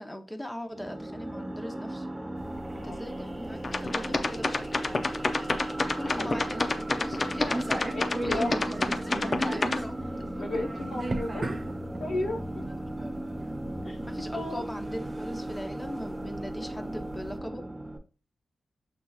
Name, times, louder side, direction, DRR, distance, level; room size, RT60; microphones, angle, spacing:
voice 1, 0.0-2.1 2.8-4.8 5.9-8.7 9.0-9.9 12.6-12.8 13.0-13.2 14.1-17.6, left 1 dB, 10° left, 5 dB, 0.8 m, -40 dB
sound 1, 0.7-18.0, right 1 dB, 20° right, 0.9 m, -37 dB
sound 2, 2.4-17.4, right 2 dB, 35° right, 0.6 m, -39 dB
sound 3, 3.6-9.8, left 3 dB, 50° left, 0.6 m, -28 dB
voice 2, 7.9-8.5 9.1-9.6 10.4-11.5 12.0-12.6 13.8-14.0 14.3-14.6, left 2 dB, 75° left, 1 dB, 0.9 m, -34 dB
6.7 x 2.9 x 2.3 m, 0.36 s
cardioid pair, 55°, 0 cm